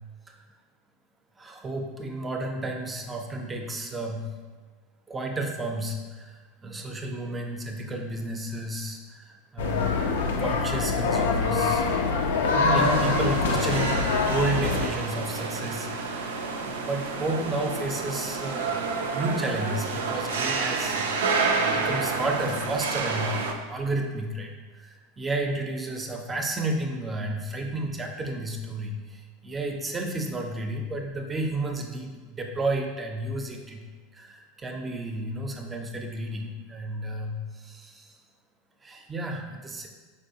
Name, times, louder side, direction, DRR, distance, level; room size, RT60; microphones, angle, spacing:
voice 1, 1.4-4.3 5.1-9.9 10.4-11.9 12.5-18.8 19.1-33.8 34.1-38.1 38.8-39.9, right 2 dB, 20° right, 2 dB, 0.5 m, -32 dB
sound 1, 9.6-14.9, left 4 dB, 85° left, 0.3 m, -24 dB
sound 2, 12.8-23.5, right 4 dB, 90° right, 0.3 m, -29 dB
3.8 x 2.7 x 2.7 m, 1.4 s
hypercardioid pair, 100°, 0 cm